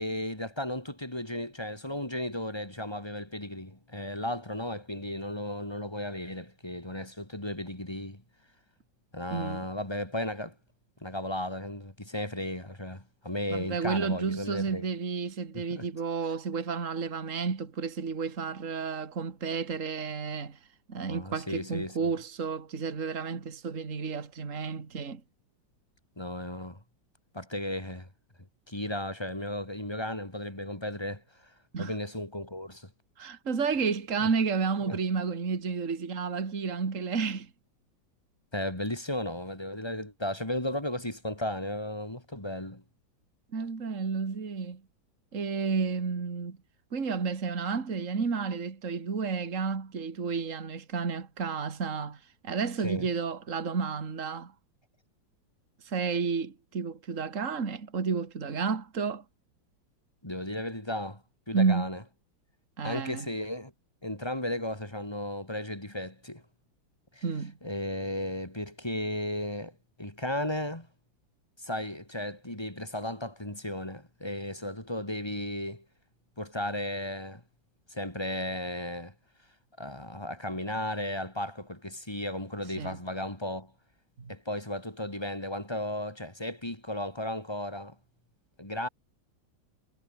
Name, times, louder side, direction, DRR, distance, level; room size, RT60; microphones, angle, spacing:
voice 1, 0.0-8.2 9.1-10.6 11.0-14.8 15.5-15.9 21.0-22.2 26.2-26.8 27.3-28.1 28.7-31.2 31.8-32.9 34.8-35.0 38.5-42.8 52.8-53.1 60.2-62.0 62.8-63.7 64.0-66.4 67.1-67.2 67.6-70.9 71.6-75.8 76.4-77.4 77.9-79.1 79.8-83.7 84.3-88.0 88.6-88.9, left 1 dB, 10° left, 3.4 m, -35 dB
voice 2, 9.3-9.7 13.5-20.6 20.9-25.2 31.7-31.9 33.2-37.5 43.5-44.8 45.3-46.6 46.9-52.2 52.4-54.5 55.9-59.2 61.5-61.9 62.8-63.3 67.2-67.5 82.8-83.0 84.2-84.3, right 5 dB, 40° right, 2.5 m, -31 dB
omnidirectional pair, 2.2 m